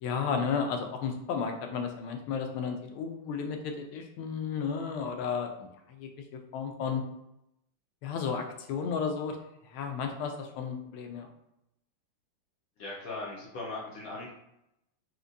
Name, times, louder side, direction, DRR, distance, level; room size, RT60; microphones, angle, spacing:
voice 1, 0.0-5.7 6.0-6.1 6.5-7.0 8.0-9.4 9.7-11.3, left 6 dB, 90° left, 4 dB, 1.4 m, -33 dB
voice 2, 12.8-14.3, left 2 dB, 70° left, -4 dB, 0.8 m, -39 dB
4.7 x 2.1 x 2.5 m, 0.83 s
omnidirectional pair, 2.3 m